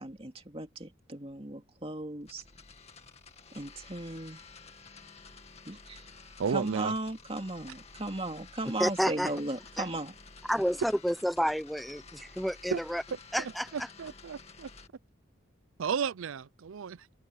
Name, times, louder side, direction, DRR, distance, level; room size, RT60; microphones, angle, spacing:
voice 1, 0.0-2.4 3.5-4.4 5.7-6.1 6.5-10.1, right 2 dB, 30° right, 2.5 m, -36 dB
sound 1, 2.2-14.9, left 4 dB, 30° left, 2.2 m, -52 dB
voice 2, 6.4-6.9 12.7-12.8 13.4-14.7 15.8-17.1, right 6 dB, 85° right, 0.5 m, -33 dB
voice 3, 8.8-9.3 9.8-9.9 10.5-13.0 13.3-13.7, equal, ahead, 0.8 m, -30 dB
head